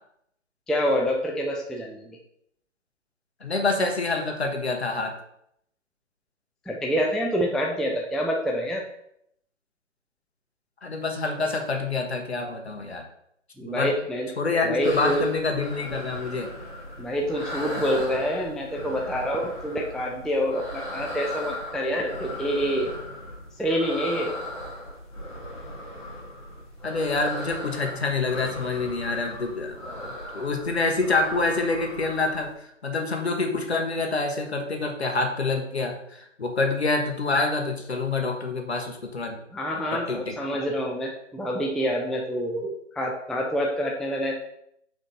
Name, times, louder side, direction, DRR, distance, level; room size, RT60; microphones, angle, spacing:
voice 1, 0.7-2.0 6.7-8.8 13.6-14.3 14.6-15.2 17.0-23.0 23.6-24.3 39.5-44.4, equal, ahead, -1 dB, 0.3 m, -27 dB
voice 2, 3.4-5.1 10.8-13.0 13.7-13.9 14.4-16.5 26.8-32.5 32.8-39.4 39.7-40.4, left 3 dB, 60° left, 3 dB, 1.2 m, -27 dB
sound 1, 14.8-32.5, left 1 dB, 20° left, 1.9 m, -37 dB
5.0 x 4.8 x 4.1 m, 0.73 s
figure-of-eight pair, 170°, 38 cm